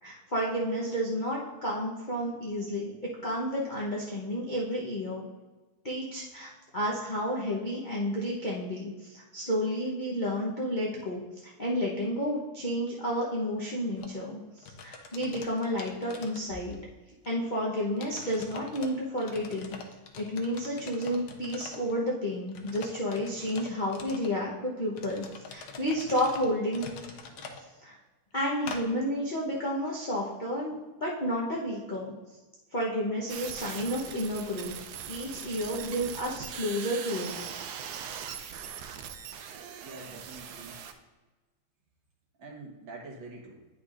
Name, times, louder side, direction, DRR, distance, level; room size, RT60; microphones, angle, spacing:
voice 1, 0.0-5.3 5.8-16.8 17.3-19.7 20.2-26.9 27.8-28.0 28.3-32.1 32.7-34.7 35.1-37.3, equal, 45° left, -5 dB, 0.6 m, -31 dB
sound 1, 14.0-14.2 14.6-16.9 17.2-17.3 18.0-18.9 19.2-21.9 22.5-24.3 24.9-27.6 28.7-28.8, left 5 dB, 65° left, 1.2 m, -44 dB
sound 2, 33.3-40.9, right 8 dB, 80° right, 0.9 m, -41 dB
voice 2, 39.8-40.8 42.4-43.6, right 3 dB, 65° right, -2 dB, 2.0 m, -45 dB
9.7 x 5.8 x 2.5 m, 1.2 s
omnidirectional pair, 2.3 m